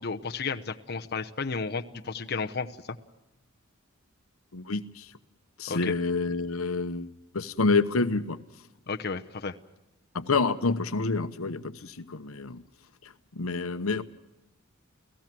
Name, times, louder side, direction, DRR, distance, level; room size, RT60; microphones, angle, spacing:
voice 1, 0.0-3.0 5.7-5.9 8.9-9.5, left 4 dB, 50° left, 5 dB, 0.9 m, -33 dB
voice 2, 4.5-5.1 5.6-8.4 10.1-12.6 13.0-14.0, left 3 dB, 85° left, 11 dB, 1.0 m, -28 dB
30.0 x 16.5 x 6.1 m, 1.0 s
head